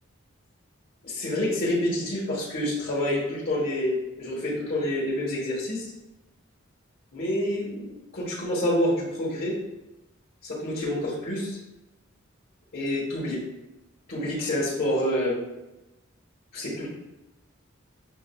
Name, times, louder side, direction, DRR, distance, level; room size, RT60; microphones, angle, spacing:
voice 1, 1.0-5.8 7.1-9.5 10.4-11.6 12.7-13.4 14.1-15.4 16.5-16.9, left 1 dB, 50° left, -8 dB, 1.2 m, -27 dB
7.2 x 2.4 x 2.3 m, 0.96 s
head